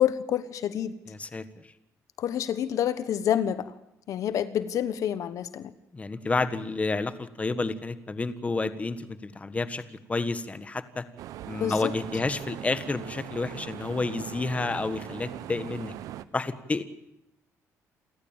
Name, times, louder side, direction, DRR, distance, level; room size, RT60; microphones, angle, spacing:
voice 1, 0.0-0.9 2.2-3.7 4.1-5.7 11.6-11.9, left 10 dB, 70° left, 13 dB, 1.2 m, -27 dB
voice 2, 1.1-1.5 5.9-11.0 11.5-15.9 16.3-16.8, left 3 dB, 25° left, 12 dB, 1.5 m, -30 dB
sound 1, 11.2-16.2, right 12 dB, 85° right, 0.9 m, -40 dB
28.5 x 14.5 x 8.9 m, 0.85 s
cardioid pair, 105°, 6 cm